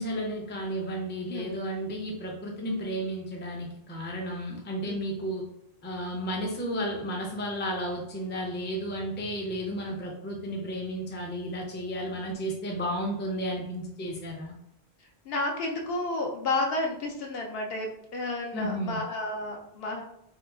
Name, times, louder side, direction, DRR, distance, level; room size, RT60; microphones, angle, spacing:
voice 1, 0.0-5.4 5.8-14.5 18.5-19.0, equal, 15° left, -1 dB, 0.4 m, -33 dB
voice 2, 15.3-20.0, left 2 dB, 65° left, 1 dB, 0.8 m, -31 dB
2.8 x 2.3 x 3.5 m, 0.78 s
omnidirectional pair, 1.1 m